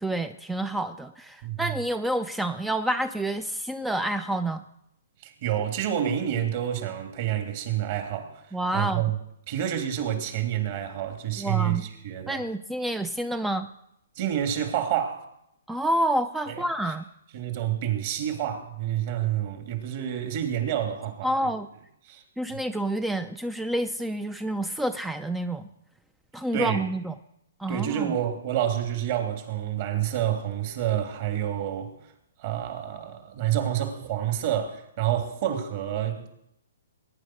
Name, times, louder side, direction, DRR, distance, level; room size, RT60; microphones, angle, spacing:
voice 1, 0.0-4.6 8.5-9.0 11.4-11.8 12.3-13.7 15.7-17.0 21.2-21.7 22.4-25.7 26.3-27.1 27.6-28.1, right 1 dB, 5° right, 0.5 m, -28 dB
voice 2, 5.2-8.4 8.7-9.1 9.5-12.4 14.1-15.2 16.5-16.6 17.3-21.5 22.1-22.2 26.5-26.8 27.7-31.9 32.4-36.3, right 10 dB, 45° right, 3.2 m, -28 dB
20.5 x 10.5 x 6.4 m
hypercardioid pair, 145°, 0 cm